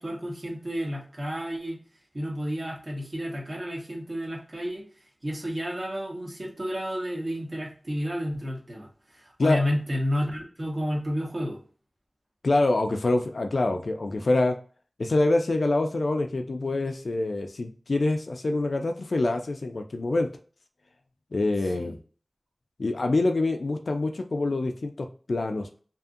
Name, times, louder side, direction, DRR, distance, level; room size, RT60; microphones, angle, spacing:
voice 1, 0.0-1.8 2.1-4.8 5.2-11.6 21.8-21.9, equal, 50° right, -1 dB, 1.1 m, -31 dB
voice 2, 12.4-14.6 15.0-20.3 21.3-22.0 22.8-25.8, left 2 dB, 85° left, 4 dB, 0.3 m, -25 dB
2.7 x 2.6 x 2.4 m, 0.40 s
wide cardioid pair, 60°, 0 cm